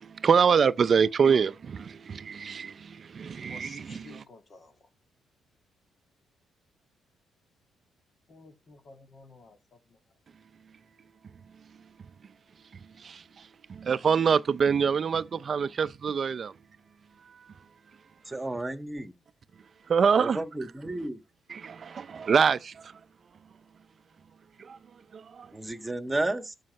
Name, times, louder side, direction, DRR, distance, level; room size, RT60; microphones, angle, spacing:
voice 1, 0.0-4.2 13.0-13.2 13.7-16.5 19.9-20.4 21.5-22.8 24.6-24.8 25.1-25.5, right 6 dB, 45° right, 0.6 m, -25 dB
voice 2, 3.5-4.8 8.3-10.0, left 3 dB, 45° left, 2.5 m, -52 dB
voice 3, 18.3-19.1 20.2-21.2 25.5-26.5, right 2 dB, 15° right, 1.7 m, -32 dB
13.5 x 5.6 x 5.4 m
cardioid pair, 90°, 0 cm